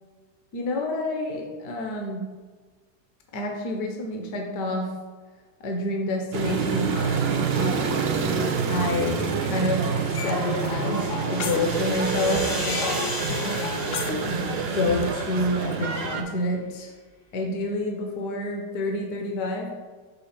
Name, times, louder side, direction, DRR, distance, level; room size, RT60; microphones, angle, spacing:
voice 1, 0.5-2.2 3.3-4.9 5.6-8.0 8.7-13.0 14.2-14.4 14.7-16.9 17.3-19.7, left 2 dB, 65° left, 2 dB, 1.3 m, -28 dB
sound 1, 6.3-16.2, right 5 dB, 90° right, 0.5 m, -27 dB
sound 2, 10.0-15.5, left 1 dB, 25° left, 0.4 m, -37 dB
sound 3, 10.1-12.1 12.3-15.1, left 6 dB, 80° left, 0.6 m, -33 dB
5.7 x 3.7 x 5.7 m, 1.5 s
omnidirectional pair, 1.9 m